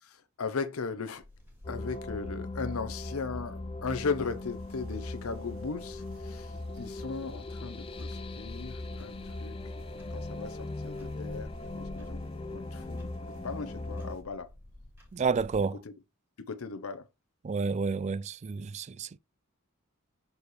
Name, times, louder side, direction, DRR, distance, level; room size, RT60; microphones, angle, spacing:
voice 1, 0.0-1.2 1.7-9.6 10.1-11.5 11.8-13.1 13.4-14.5 15.8-15.9 16.4-17.1, left 4 dB, 80° left, 0.7 m, -37 dB
Clock, 1.1-15.6, left 1 dB, 10° right, 2.6 m, -52 dB
sound 1, 1.6-14.2, left 2 dB, 25° left, 0.5 m, -39 dB
sound 2, 4.1-14.2, right 1 dB, 75° right, 1.4 m, -61 dB
voice 2, 15.1-15.8 17.4-19.2, right 5 dB, 30° right, 0.3 m, -30 dB
7.0 x 4.2 x 3.2 m
head